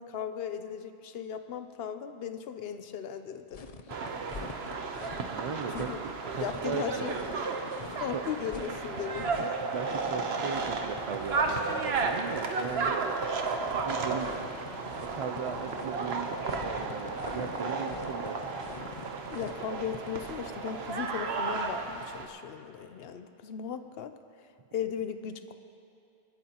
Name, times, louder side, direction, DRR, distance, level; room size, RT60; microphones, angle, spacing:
voice 1, 0.0-3.6 5.7-6.0 6.3-7.5 7.9-9.5 19.3-24.1 24.7-25.5, left 8 dB, 75° left, 10 dB, 0.8 m, -37 dB
sound 1, 3.5-20.6, left 4 dB, 45° left, 0.6 m, -46 dB
sound 2, 3.9-22.3, right 4 dB, 80° right, 1.1 m, -33 dB
voice 2, 5.3-5.9 6.3-7.2 8.1-8.2 9.1-9.5 9.7-13.0 13.7-14.4 14.9-16.3 16.6-18.5, right 6 dB, 45° right, 5 dB, 0.4 m, -38 dB
27.5 x 9.3 x 2.9 m, 2.5 s
omnidirectional pair, 1.0 m